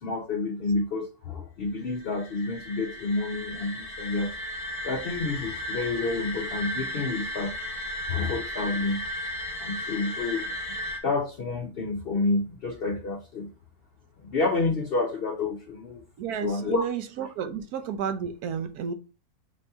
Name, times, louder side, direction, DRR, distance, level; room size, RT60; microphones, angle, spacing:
voice 1, 0.0-4.3 4.8-7.5 8.1-9.1 9.6-10.5 11.0-13.5 14.2-16.0 16.4-16.8, left 3 dB, 60° left, 0.6 m, -29 dB
sound 1, 1.9-11.0, equal, 45° left, 1.2 m, -35 dB
voice 2, 16.2-18.9, right 7 dB, 80° right, 1.2 m, -32 dB
5.3 x 2.8 x 3.4 m
omnidirectional pair, 1.6 m